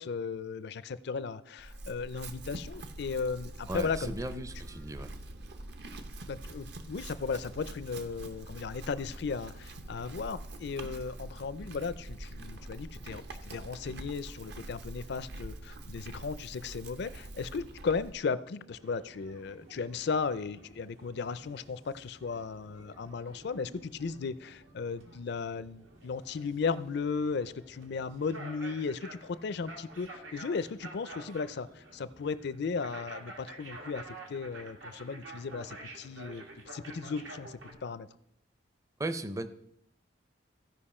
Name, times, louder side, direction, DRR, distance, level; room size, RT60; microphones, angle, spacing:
voice 1, 0.0-4.4 6.3-38.1, left 5 dB, 60° left, 16 dB, 0.4 m, -36 dB
Chewing mastication / Livestock farm animals working animals, 1.6-18.1, right 1 dB, 60° right, 0.8 m, -44 dB
voice 2, 3.7-5.1 39.0-39.5, right 2 dB, 15° right, 11 dB, 0.5 m, -36 dB
sound 1, 18.7-37.7, right 2 dB, 85° right, 1.9 m, -50 dB
15.5 x 5.3 x 4.3 m, 0.76 s
head